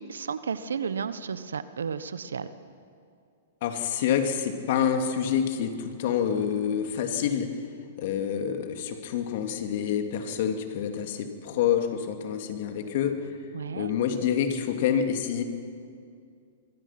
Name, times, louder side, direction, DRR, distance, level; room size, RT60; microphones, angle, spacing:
voice 1, 0.0-2.5 13.5-13.9, right 6 dB, 80° right, 13 dB, 1.2 m, -33 dB
voice 2, 3.6-7.5 8.0-13.2 13.7-15.4, left 8 dB, 55° left, 5 dB, 2.8 m, -27 dB
26.0 x 23.5 x 6.1 m, 2.3 s
hypercardioid pair, 115°, 0 cm